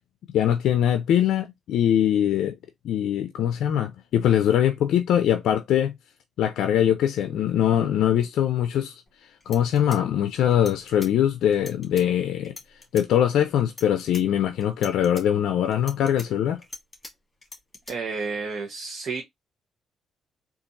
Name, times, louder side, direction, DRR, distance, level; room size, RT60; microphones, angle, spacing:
voice 1, 0.3-2.5 2.8-5.9 6.4-8.9 9.5-12.5 12.9-16.6, left 10 dB, 80° left, 0.4 m, -22 dB
sound 1, 9.1-9.2 9.4-11.1 11.5-12.0 12.4-13.1 13.6-14.2 14.6-15.2 15.7-17.1 17.4-17.9, left 2 dB, 20° left, 1.8 m, -42 dB
voice 2, 17.9-19.2, right 4 dB, 55° right, 0.8 m, -31 dB
4.0 x 2.5 x 2.5 m
cardioid pair, 90°, 0 cm